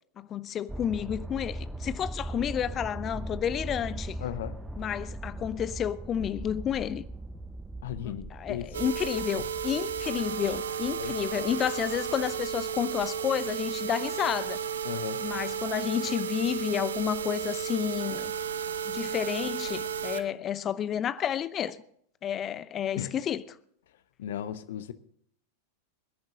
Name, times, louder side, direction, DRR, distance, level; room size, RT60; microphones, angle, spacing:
voice 1, 0.2-4.2 4.8-7.0 8.0-14.6 15.2-18.3 18.9-21.8 22.2-23.4, left 9 dB, 25° left, 0.7 m, -31 dB
sound 1, 0.7-13.4 13.9-14.0, right 2 dB, 5° right, 0.8 m, -40 dB
voice 2, 4.2-4.6 7.8-8.9 9.4-9.5 11.0-11.2 14.8-15.3 23.0-23.2 24.2-24.9, left 11 dB, 55° left, 0.9 m, -36 dB
sound 2, 8.7-20.2 20.7-20.8 21.2-21.3 21.7-21.8, right 7 dB, 65° right, 0.9 m, -33 dB
23.5 x 10.5 x 3.8 m
figure-of-eight pair, 90°, 0 cm